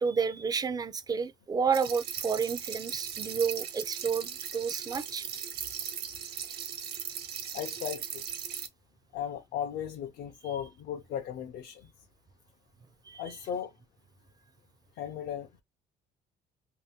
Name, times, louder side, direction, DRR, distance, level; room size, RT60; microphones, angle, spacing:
voice 1, 0.0-5.2 10.4-10.5 13.1-13.2, right 6 dB, 25° right, 0.4 m, -30 dB
sound 1, 1.7-8.7, right 8 dB, 70° right, 0.7 m, -38 dB
voice 2, 7.5-8.2 9.1-11.9 13.2-13.7 15.0-15.6, left 9 dB, 70° left, 0.6 m, -36 dB
2.7 x 2.1 x 3.5 m
cardioid pair, 110°, 17 cm